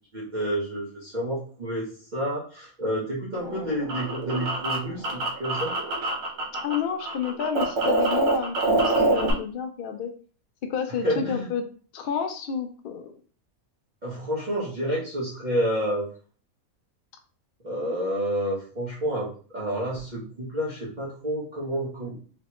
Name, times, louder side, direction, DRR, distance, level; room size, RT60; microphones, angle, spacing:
voice 1, 0.1-5.7 11.0-11.5 14.0-16.1 17.6-22.2, equal, 35° right, -7 dB, 0.9 m, -29 dB
sound 1, 3.4-6.8 7.0-9.3, right 2 dB, 75° right, 1.3 m, -25 dB
voice 2, 6.6-10.1 10.7-11.6 11.9-13.1, left 7 dB, 75° left, 6 dB, 0.5 m, -30 dB
3.1 x 3.1 x 2.9 m, 0.42 s
omnidirectional pair, 1.5 m